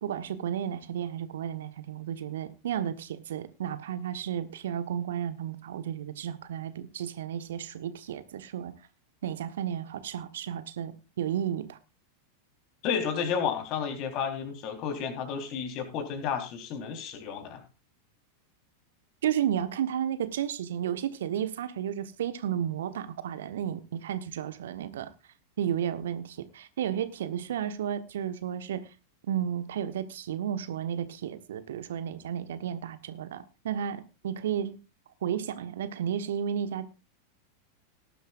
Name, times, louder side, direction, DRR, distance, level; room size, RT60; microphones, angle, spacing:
voice 1, 0.0-8.7 9.2-11.8 19.2-25.1 25.6-28.9 29.2-34.8 35.2-36.9, right 9 dB, 60° right, 1.2 m, -33 dB
voice 2, 12.8-17.6, left 7 dB, 40° left, 3.7 m, -32 dB
18.5 x 11.5 x 2.5 m
figure-of-eight pair, 90°, 0 cm